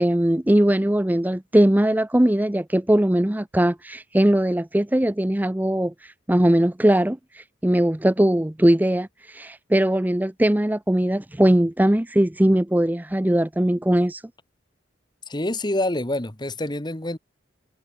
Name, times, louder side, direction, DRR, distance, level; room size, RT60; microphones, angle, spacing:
voice 1, 0.0-14.2, right 1 dB, 10° right, 0.5 m, -20 dB
voice 2, 15.3-17.2, left 1 dB, 25° left, 1.5 m, -26 dB
head